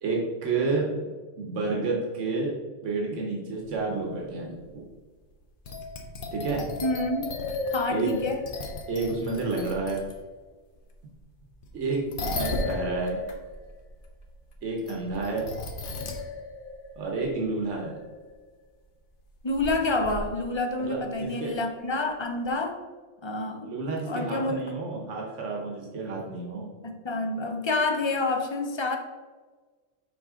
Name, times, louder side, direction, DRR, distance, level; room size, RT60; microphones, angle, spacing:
voice 1, 0.0-0.8 1.4-2.5 2.8-4.8 6.3-6.6 7.9-8.1 8.9-10.0 11.7-13.2 14.6-15.5 17.0-18.0 20.8-21.5 23.6-26.7, right 3 dB, 80° right, -1 dB, 1.4 m, -30 dB
sound 1, 3.6-3.7 4.6-4.8 5.6-10.2 11.6-18.3 19.5-19.7 20.0-20.4 22.5-22.6, left 3 dB, 50° left, 0.9 m, -35 dB
voice 2, 6.8-7.3 7.7-8.4 19.4-22.8 23.2-23.7 24.1-24.6 26.8-29.0, left 2 dB, 35° left, 4 dB, 0.5 m, -28 dB
6.2 x 4.7 x 3.7 m, 1.4 s
omnidirectional pair, 1.2 m